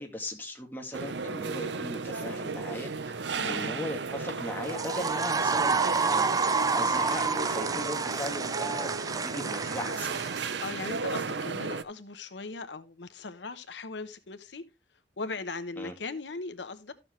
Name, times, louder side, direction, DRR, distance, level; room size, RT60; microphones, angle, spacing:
voice 1, 0.0-10.2 15.8-15.9, left 1 dB, 10° left, 2.2 m, -38 dB
sound 1, 0.9-11.8, right 4 dB, 80° right, 0.7 m, -34 dB
voice 2, 3.4-3.7 10.6-14.6 15.2-16.9, left 3 dB, 90° left, 0.9 m, -38 dB
sound 2, 4.6-11.0, right 4 dB, 20° right, 0.4 m, -29 dB
13.0 x 7.0 x 3.2 m
head